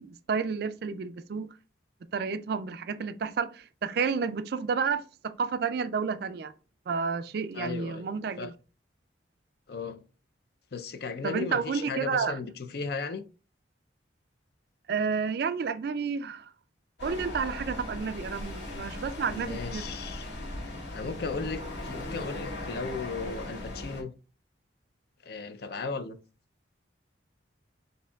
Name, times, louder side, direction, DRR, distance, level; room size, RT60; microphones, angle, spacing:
voice 1, 0.0-1.5 2.1-6.5 6.9-8.5 11.2-12.4 14.9-16.5 17.0-19.8, right 5 dB, 55° right, 0.3 m, -31 dB
voice 2, 7.5-8.1 8.4-8.5 9.7-10.0 10.7-13.2 19.3-20.3 20.9-24.1 25.2-26.2, left 4 dB, 55° left, 0.5 m, -36 dB
sound 1, 17.0-24.0, left 1 dB, 70° left, 1.7 m, -38 dB
6.6 x 2.8 x 2.3 m
head